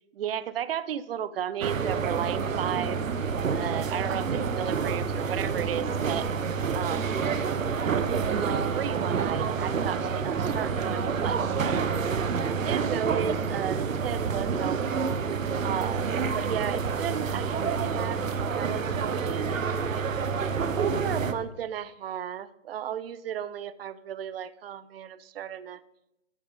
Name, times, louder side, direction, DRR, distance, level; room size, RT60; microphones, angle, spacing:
voice 1, 0.1-3.0 3.5-6.3 6.7-7.1 7.8-12.0 12.4-15.2 15.6-20.0 20.8-25.8, right 9 dB, 50° right, 16 dB, 0.5 m, -34 dB
sound 1, 1.6-21.3, right 5 dB, 90° right, 1.0 m, -28 dB
9.2 x 8.9 x 5.1 m, 0.88 s
hypercardioid pair, 155°, 39 cm